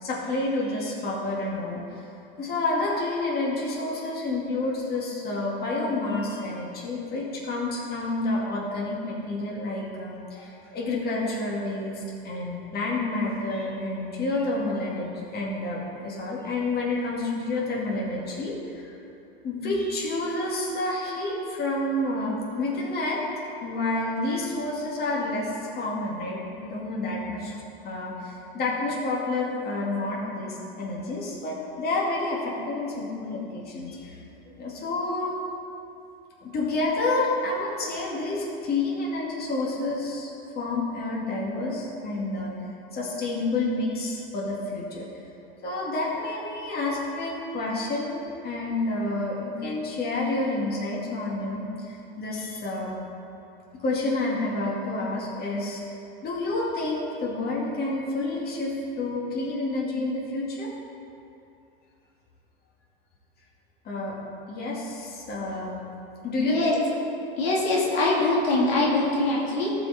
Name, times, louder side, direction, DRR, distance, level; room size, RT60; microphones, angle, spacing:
voice 1, 0.0-1.8 2.4-18.9 19.4-23.2 23.6-25.5 25.7-27.5 27.8-34.2 34.6-35.3 36.4-40.3 40.5-42.5 42.9-45.1 45.6-51.7 52.2-53.0 53.8-55.8 56.2-60.7 63.8-64.2 64.5-65.8 66.2-66.8, left 2 dB, 35° left, -4 dB, 2.2 m, -29 dB
voice 2, 67.4-69.7, left 2 dB, 85° left, -5 dB, 2.4 m, -23 dB
14.5 x 5.1 x 4.2 m, 2.7 s
hypercardioid pair, 110°, 29 cm